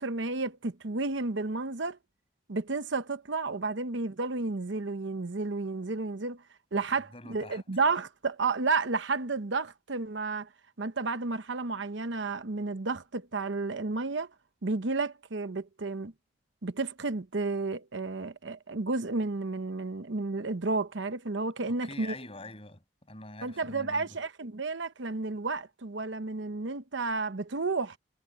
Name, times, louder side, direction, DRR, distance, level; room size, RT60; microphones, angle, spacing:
voice 1, 0.0-2.0 2.5-6.4 6.7-10.5 10.8-14.3 14.6-16.1 16.6-22.1 23.4-28.0, right 3 dB, 75° right, 0.9 m, -32 dB
voice 2, 7.1-7.6 21.8-24.2, left 2 dB, 30° left, 8.0 m, -45 dB
head